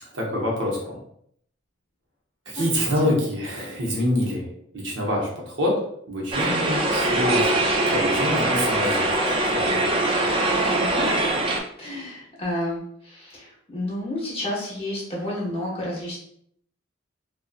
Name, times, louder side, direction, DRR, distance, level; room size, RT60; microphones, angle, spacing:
voice 1, 0.0-1.0 2.5-4.5 4.7-5.8 6.1-7.5 7.9-9.8, left 1 dB, 65° right, -2 dB, 0.7 m, -26 dB
sound 1, 6.3-11.6, right 2 dB, 25° right, 0.3 m, -22 dB
voice 2, 10.5-11.1 11.8-16.2, left 1 dB, 30° left, -5 dB, 0.8 m, -31 dB
2.5 x 2.2 x 2.4 m, 0.68 s
head